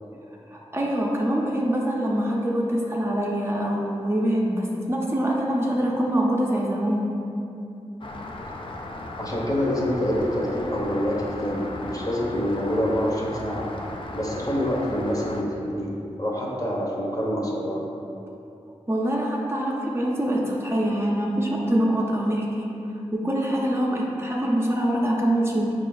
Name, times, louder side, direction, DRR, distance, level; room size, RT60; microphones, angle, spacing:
voice 1, 0.5-7.1 18.9-22.7 23.1-25.7, right 1 dB, 20° right, -3 dB, 0.6 m, -24 dB
Rain, 8.0-15.4, left 1 dB, 50° left, 0.4 m, -36 dB
voice 2, 9.2-13.7 14.1-17.8, equal, 30° left, -3 dB, 0.8 m, -26 dB
5.2 x 2.5 x 3.8 m, 2.7 s
cardioid pair, 45°, 12 cm